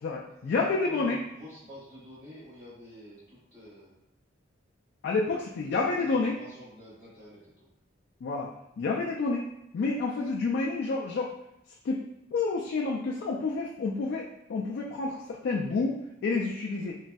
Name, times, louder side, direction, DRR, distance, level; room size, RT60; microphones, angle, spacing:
voice 1, 0.0-1.2 5.0-6.4 8.2-8.5 8.8-9.5 9.7-11.3 11.8-12.0 12.3-16.0 16.2-17.0, left 3 dB, 60° left, -2 dB, 0.3 m, -29 dB
voice 2, 0.8-4.0 6.0-7.7, left 1 dB, 20° right, -13 dB, 1.0 m, -48 dB
3.1 x 2.5 x 2.3 m, 0.84 s
head